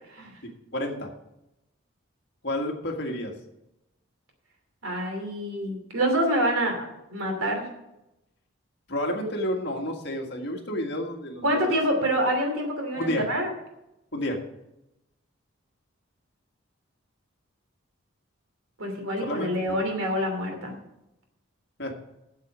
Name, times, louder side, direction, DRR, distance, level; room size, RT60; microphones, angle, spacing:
voice 1, 0.1-0.4 4.8-7.7 11.4-13.5 18.8-20.7, equal, 80° right, 3 dB, 2.9 m, -26 dB
voice 2, 0.7-1.1 2.4-3.3 8.9-11.8 12.9-13.3 14.1-14.4 19.2-19.8 21.8-21.9, left 1 dB, 55° left, 2 dB, 1.8 m, -30 dB
8.2 x 7.9 x 6.1 m, 0.88 s
head